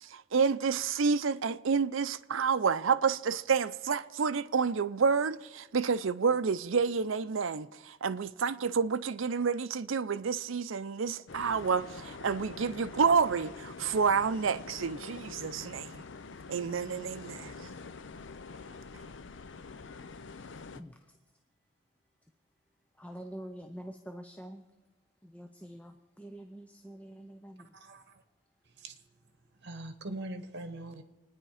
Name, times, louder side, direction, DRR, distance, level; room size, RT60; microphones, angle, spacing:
voice 1, 0.0-16.0 16.5-17.7, right 5 dB, 70° right, 0.5 m, -29 dB
sound 1, 11.3-20.8, left 4 dB, 60° left, 0.6 m, -46 dB
voice 2, 23.0-24.6 25.2-27.6, equal, 5° left, 0.5 m, -46 dB
voice 3, 27.6-28.2 28.8-29.0 29.6-31.0, right 2 dB, 55° right, 1.3 m, -42 dB
25.5 x 10.0 x 4.9 m
head